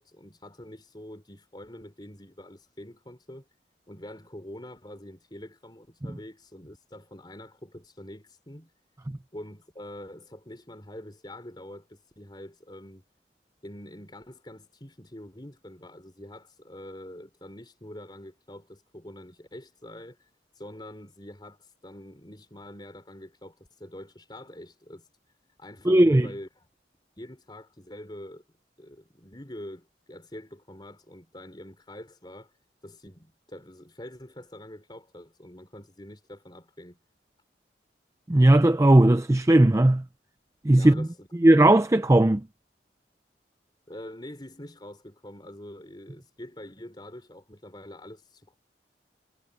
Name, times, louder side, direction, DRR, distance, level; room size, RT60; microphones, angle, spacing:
voice 1, 0.0-3.5 3.9-8.7 9.3-13.0 13.6-20.3 20.5-25.1 25.6-26.7 27.2-28.4 28.8-32.5 32.8-37.0 40.8-41.3 43.9-48.6, left 1 dB, 25° left, 4.3 m, -45 dB
voice 2, 25.9-26.3 38.3-40.0 40.6-41.1 41.4-42.4, right 1 dB, 15° right, 0.4 m, -17 dB
head